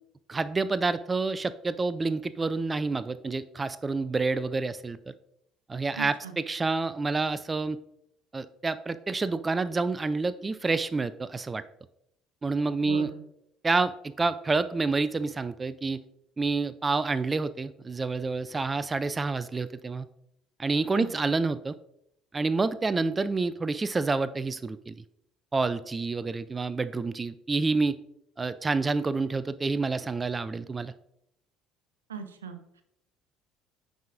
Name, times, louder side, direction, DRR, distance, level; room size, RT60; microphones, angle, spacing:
voice 1, 0.3-5.1 5.7-7.8 8.3-11.6 12.4-13.1 13.6-16.0 16.4-20.1 20.6-21.7 22.3-24.9 25.5-28.0 28.4-30.9, right 3 dB, 25° right, 15 dB, 0.3 m, -28 dB
voice 2, 6.0-6.4 12.8-13.2 20.9-21.1 32.1-32.8, right 6 dB, 90° right, 9 dB, 0.5 m, -39 dB
9.0 x 4.7 x 2.5 m, 0.77 s
hypercardioid pair, 60°, 0 cm